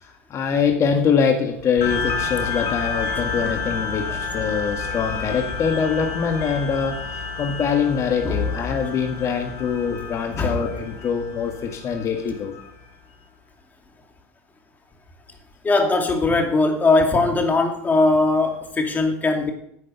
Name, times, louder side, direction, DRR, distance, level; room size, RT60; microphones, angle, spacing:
voice 1, 0.0-7.0 7.4-12.5, left 6 dB, 40° left, 4 dB, 1.7 m, -23 dB
sound 1, 1.8-12.7, left 4 dB, 60° left, 5.1 m, -30 dB
voice 2, 15.6-19.5, left 3 dB, 20° left, 4 dB, 2.6 m, -20 dB
10.0 x 8.4 x 7.0 m, 0.72 s
hypercardioid pair, 100°, 8 cm